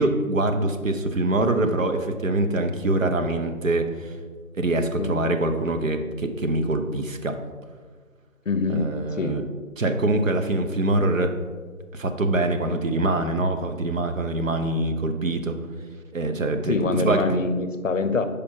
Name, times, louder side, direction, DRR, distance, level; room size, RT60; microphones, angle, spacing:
voice 1, 0.0-4.2 4.5-7.4 8.7-9.4 9.8-11.4 11.9-15.6 16.1-17.2, right 2 dB, 60° right, 6 dB, 0.7 m, -24 dB
voice 2, 8.5-9.4 16.7-18.2, left 3 dB, 60° left, 10 dB, 0.6 m, -25 dB
5.6 x 5.0 x 4.4 m, 1.5 s
figure-of-eight pair, 165°, 43 cm